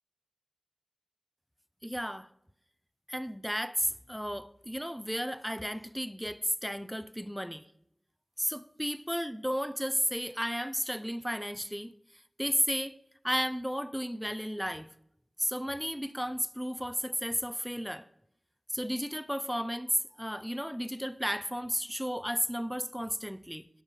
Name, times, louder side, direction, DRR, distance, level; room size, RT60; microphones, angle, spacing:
voice 1, 1.8-2.3 3.1-7.7 8.4-11.9 12.4-13.0 13.2-14.9 15.4-18.1 18.7-23.7, equal, ahead, 0.5 m, -33 dB
11.0 x 5.2 x 8.3 m
cardioid pair, 40°, 0 cm